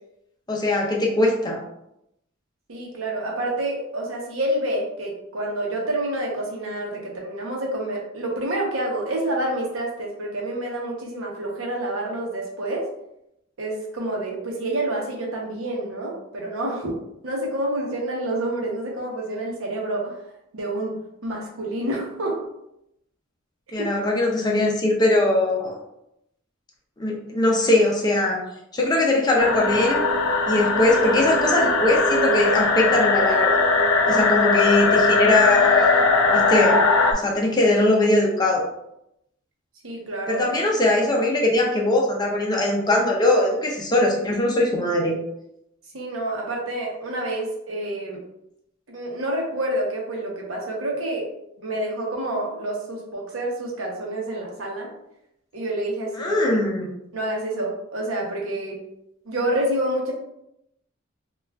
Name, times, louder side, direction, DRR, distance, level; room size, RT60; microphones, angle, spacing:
voice 1, 0.5-1.6 23.7-25.8 27.0-28.4 28.7-30.0 30.5-33.6 34.1-36.8 37.1-38.7 40.3-45.2 56.2-56.9, left 2 dB, 20° left, -1 dB, 0.5 m, -21 dB
voice 2, 2.7-12.8 13.6-16.9 17.2-20.2 20.5-22.4 23.8-23.9 34.1-34.2 39.8-40.4 45.9-48.2 48.9-51.3 51.6-54.9 55.5-56.4 57.1-58.8 59.3-60.1, right 1 dB, 75° right, -1 dB, 0.8 m, -28 dB
sound 1, 29.4-37.1, left 3 dB, 85° left, 0.4 m, -19 dB
3.3 x 2.3 x 2.3 m, 0.81 s
head